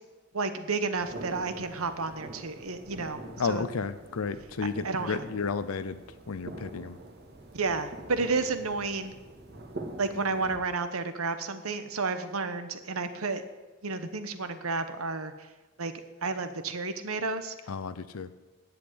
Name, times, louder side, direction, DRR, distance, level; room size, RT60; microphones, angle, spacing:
voice 1, 0.3-3.7 4.6-5.2 7.5-9.1 10.0-13.4 13.8-15.5 15.8-15.9 16.2-17.5, right 4 dB, 85° right, 10 dB, 1.2 m, -31 dB
sound 1, 1.0-10.6, right 2 dB, 50° right, 1.8 m, -45 dB
voice 2, 3.4-6.0 6.3-7.0 17.7-18.3, left 5 dB, 85° left, 12 dB, 0.6 m, -32 dB
10.5 x 8.3 x 9.5 m, 1.2 s
head